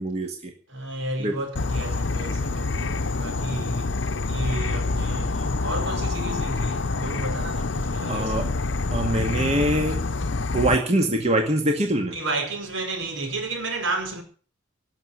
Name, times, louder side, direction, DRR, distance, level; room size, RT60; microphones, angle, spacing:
voice 1, 0.0-0.5 1.2-1.4 8.1-8.5 8.9-10.0 10.5-12.2, right 1 dB, 35° right, 2.0 m, -23 dB
voice 2, 0.7-8.8 12.1-14.2, right 2 dB, 75° right, 5.2 m, -32 dB
Insect / Frog, 1.6-10.8, left 3 dB, 65° left, 0.8 m, -27 dB
18.0 x 7.2 x 9.6 m
head